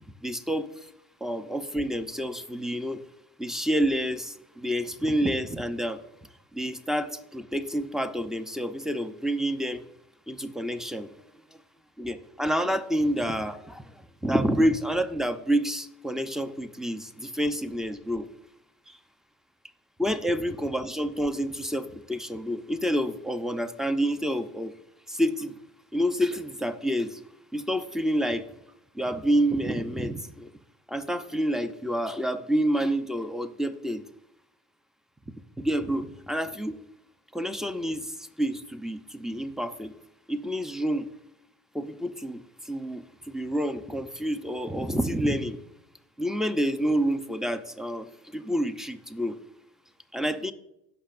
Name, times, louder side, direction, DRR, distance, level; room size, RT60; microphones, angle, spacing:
voice 1, 0.2-0.7 1.2-3.0 3.4-6.0 6.5-9.8 10.3-11.1 12.0-13.8 14.2-18.3 20.0-24.7 25.1-25.5 25.9-27.2 27.5-28.4 29.0-30.5 30.9-34.0 35.6-36.8 37.3-38.1 38.4-39.9 40.3-41.1 41.7-42.4 42.7-45.6 46.2-48.1 48.3-49.4 50.1-50.5, equal, ahead, 11 dB, 0.7 m, -28 dB
16.5 x 6.0 x 2.5 m, 0.85 s
hypercardioid pair, 80°, 35 cm